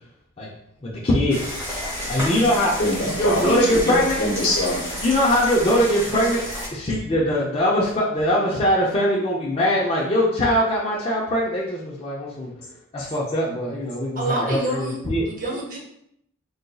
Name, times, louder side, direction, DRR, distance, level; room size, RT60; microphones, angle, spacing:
voice 1, 0.8-1.5 2.1-2.7 3.2-4.2 5.0-6.4 6.7-12.5 12.9-15.2, equal, 25° left, -6 dB, 0.4 m, -21 dB
sound 1, 1.3-6.7, equal, 10° right, 0.9 m, -31 dB
voice 2, 2.8-4.9, left 1 dB, 50° left, -4 dB, 1.1 m, -23 dB
voice 3, 14.2-15.8, right 2 dB, 40° right, -3 dB, 0.8 m, -28 dB
3.9 x 2.5 x 2.2 m, 0.75 s
head